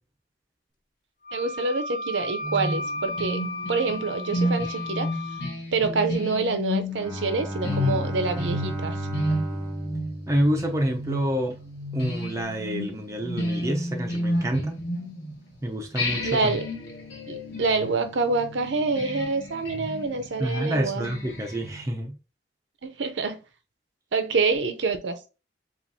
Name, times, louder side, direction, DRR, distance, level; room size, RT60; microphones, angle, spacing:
Wind instrument woodwind instrument, 1.2-5.5, left 2 dB, 45° left, 0.6 m, -34 dB
voice 1, 1.3-3.4 3.7-5.1 5.7-9.0 16.2-16.7 17.3-21.1 22.8-23.4 24.1-25.2, right 4 dB, 85° right, 0.6 m, -26 dB
sound 1, 2.4-15.5 16.0-21.9, left 1 dB, 65° left, 1.6 m, -32 dB
Bowed string instrument, 6.9-11.4, right 1 dB, 15° left, 1.6 m, -34 dB
voice 2, 10.3-11.6 11.9-14.8 15.6-16.5 20.4-22.2, equal, 15° right, 0.6 m, -27 dB
7.2 x 2.4 x 2.7 m
head